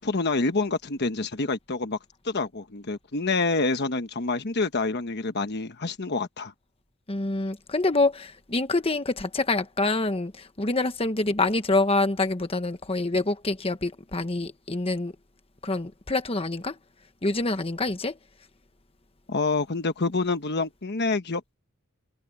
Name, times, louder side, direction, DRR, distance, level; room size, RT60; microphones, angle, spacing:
voice 1, 0.0-2.0 2.2-6.5 19.3-21.6, left 3 dB, 50° left, 1.1 m, -27 dB
voice 2, 7.1-15.1 15.6-16.8 17.2-18.1, left 2 dB, 25° left, 1.2 m, -26 dB
head